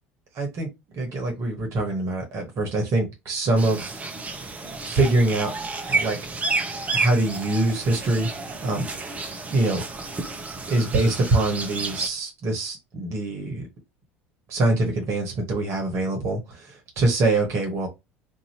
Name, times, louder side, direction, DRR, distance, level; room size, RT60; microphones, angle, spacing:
voice 1, 0.3-0.7 0.9-4.0 4.8-5.5 5.9-6.2 6.9-8.3 8.6-8.9 9.5-9.8 10.7-13.6 14.5-17.9, right 2 dB, 50° right, 1.2 m, -24 dB
sound 1, 3.6-12.1, right 3 dB, 20° right, 0.8 m, -30 dB
2.7 x 2.6 x 2.9 m
figure-of-eight pair, 70°, 6 cm